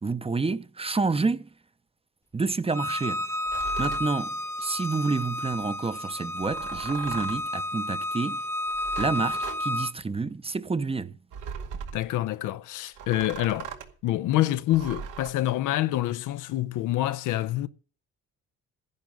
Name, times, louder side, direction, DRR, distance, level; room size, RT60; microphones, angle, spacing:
voice 1, 0.0-1.5 2.3-3.3 3.8-8.4 9.0-11.2, right 4 dB, 20° right, 0.7 m, -29 dB
Bowed string instrument, 2.7-9.9, left 1 dB, 10° left, 1.0 m, -31 dB
sound 1, 3.4-4.1 6.4-7.5 8.6-9.6 11.3-12.1 13.0-13.9 14.7-15.3, right 7 dB, 90° right, 2.2 m, -39 dB
voice 2, 11.9-13.7 14.0-17.7, left 14 dB, 90° left, 0.7 m, -26 dB
12.0 x 10.5 x 5.2 m
cardioid pair, 90°, 30 cm